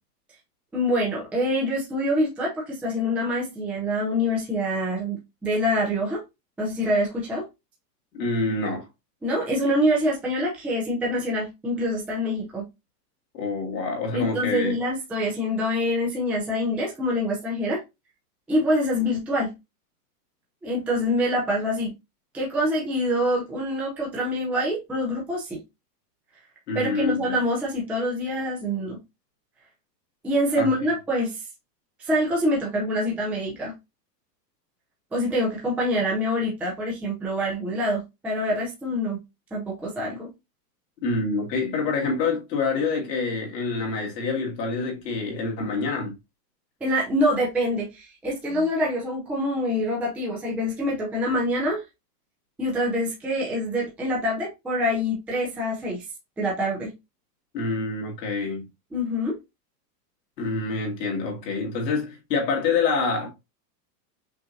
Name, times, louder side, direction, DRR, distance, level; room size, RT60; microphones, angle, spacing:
voice 1, 0.7-6.2 6.6-7.4 9.2-12.6 14.1-17.8 18.5-19.5 20.6-21.9 22.3-25.6 26.7-29.0 30.2-31.4 32.0-33.7 35.1-39.2 39.5-40.3 46.8-51.8 52.6-56.0 56.4-56.9 58.9-59.3, equal, 5° right, 0.5 m, -25 dB
voice 2, 8.1-8.8 13.3-14.8 26.7-27.4 30.5-30.7 41.0-46.1 48.5-48.6 57.5-58.7 60.4-63.3, left 4 dB, 90° left, 2.1 m, -27 dB
5.7 x 2.5 x 2.6 m
supercardioid pair, 145°, 48 cm